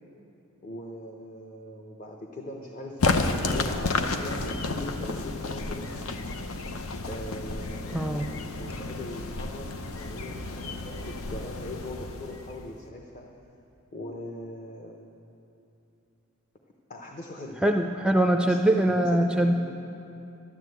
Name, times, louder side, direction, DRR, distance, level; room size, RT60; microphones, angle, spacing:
voice 1, 0.6-5.9 7.0-9.7 10.0-13.3 13.9-15.0 16.9-17.6 18.1-18.6 18.8-19.5, left 1 dB, 40° left, 1 dB, 0.9 m, -40 dB
sound 1, 3.0-12.8, left 3 dB, 85° left, 0.8 m, -31 dB
voice 2, 7.9-8.3 17.6-19.5, right 1 dB, 5° right, 4 dB, 0.4 m, -23 dB
12.0 x 11.0 x 8.1 m, 2.8 s
head